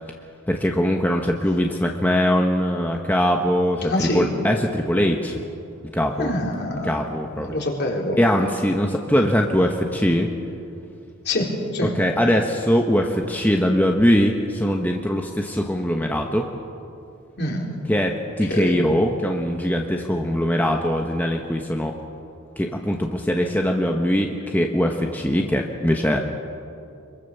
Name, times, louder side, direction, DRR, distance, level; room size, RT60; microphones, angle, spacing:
voice 1, 0.5-5.4 5.9-6.3 6.8-7.5 8.2-10.3 11.8-16.5 17.9-22.0 22.6-26.2, equal, 10° left, 2 dB, 1.1 m, -21 dB
voice 2, 3.9-4.3 6.2-6.9 7.4-8.2 11.2-11.9 17.4-17.7 18.5-18.8, left 1 dB, 50° left, -1 dB, 4.1 m, -25 dB
25.5 x 23.0 x 6.9 m, 2.6 s
head